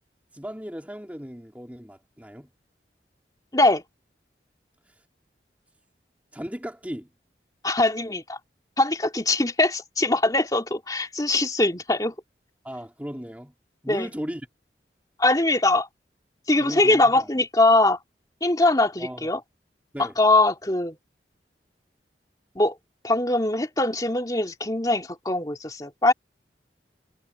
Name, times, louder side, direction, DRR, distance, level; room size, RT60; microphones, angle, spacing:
voice 1, 0.3-2.5 6.3-7.1 12.6-13.5 13.8-14.5 16.6-17.3 19.0-19.3 19.9-20.1, equal, 10° right, 3.5 m, -36 dB
voice 2, 3.5-3.8 7.6-8.4 8.8-12.1 13.9-14.1 15.2-15.9 16.5-18.0 18.4-19.4 20.0-21.0 22.6-22.8 23.0-26.1, left 2 dB, 20° left, 2.4 m, -22 dB
head